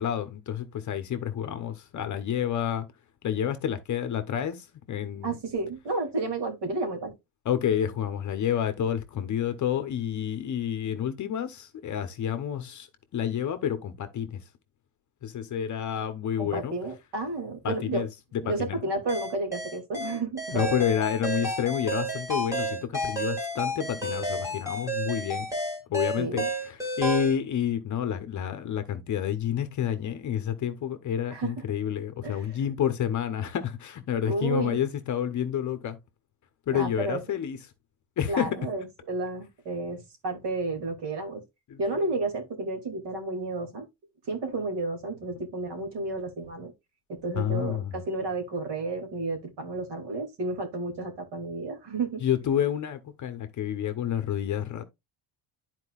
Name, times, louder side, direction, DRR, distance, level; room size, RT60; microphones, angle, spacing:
voice 1, 0.0-2.9 3.2-5.4 7.4-14.4 15.2-16.7 17.6-18.8 20.5-25.5 25.9-36.0 36.7-37.6 38.2-38.5 41.7-41.8 47.4-47.9 52.2-54.8, left 9 dB, 35° left, 0.8 m, -29 dB
voice 2, 5.2-7.1 16.4-18.1 18.4-20.7 26.2-26.5 31.3-31.5 32.2-32.6 34.3-34.8 36.7-37.2 38.3-41.4 41.8-43.9 44.3-46.7 47.1-52.2, right 3 dB, 55° right, 2.6 m, -32 dB
sound 1, 19.1-27.4, right 1 dB, 5° right, 1.9 m, -31 dB
12.0 x 4.5 x 2.3 m
cardioid pair, 175°, 49 cm